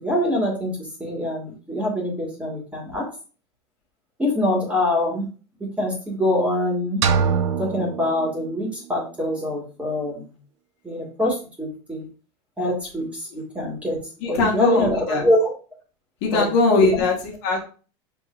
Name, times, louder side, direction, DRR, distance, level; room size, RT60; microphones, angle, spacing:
voice 1, 0.0-0.7 1.0-3.0 4.2-5.2 5.8-7.0 7.6-10.2 10.8-12.1 12.6-14.0 14.3-15.5 16.3-16.5 16.7-17.0, left 1 dB, 10° right, -2 dB, 1.7 m, -24 dB
sound 1, 7.0-9.0, right 6 dB, 90° right, 0.6 m, -24 dB
voice 2, 14.2-15.2 16.2-17.6, left 3 dB, 55° left, 0 dB, 1.4 m, -21 dB
6.3 x 3.1 x 2.5 m, 0.36 s
supercardioid pair, 155°, 15 cm